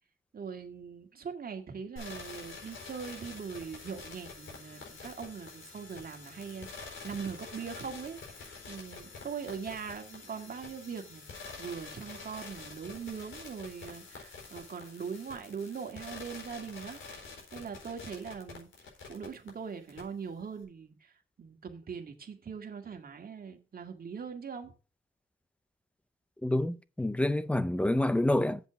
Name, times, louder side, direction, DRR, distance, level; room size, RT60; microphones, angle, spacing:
voice 1, 0.3-11.3 11.6-17.0 17.5-18.7 19.0-21.1 21.4-24.7, right 6 dB, 45° right, 1.9 m, -41 dB
sound 1, 2.0-19.5 19.9-20.0, left 4 dB, 65° left, 4.4 m, -47 dB
voice 2, 26.4-28.6, left 1 dB, 5° left, 0.5 m, -27 dB
8.1 x 7.3 x 5.8 m
wide cardioid pair, 145°, 21 cm